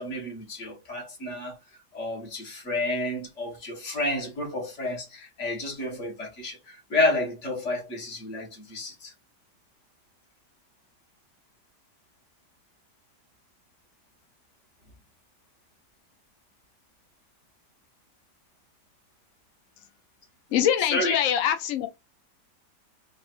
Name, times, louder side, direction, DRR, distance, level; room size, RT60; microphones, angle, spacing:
voice 1, 0.0-1.6 1.9-9.1 20.5-21.2, left 2 dB, 45° left, 1.8 m, -30 dB
voice 2, 20.5-21.9, left 10 dB, 75° left, 0.7 m, -24 dB
3.9 x 2.6 x 4.3 m
omnidirectional pair, 1.9 m